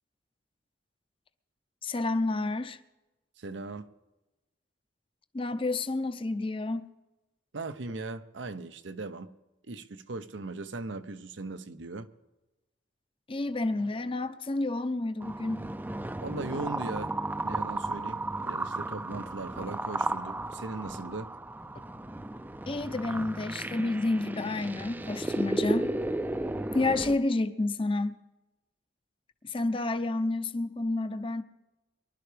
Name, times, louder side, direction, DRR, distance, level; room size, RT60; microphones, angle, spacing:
voice 1, 1.8-2.8 5.3-6.9 13.3-15.6 22.7-25.9 26.7-28.2 29.4-31.4, left 2 dB, 30° left, 0.7 m, -30 dB
voice 2, 3.4-3.9 7.5-9.3 9.6-12.1 16.2-17.1 17.4-21.3, right 3 dB, 90° right, 0.8 m, -38 dB
sound 1, 15.2-27.1, right 2 dB, 10° right, 0.4 m, -34 dB
23.5 x 11.5 x 3.4 m
head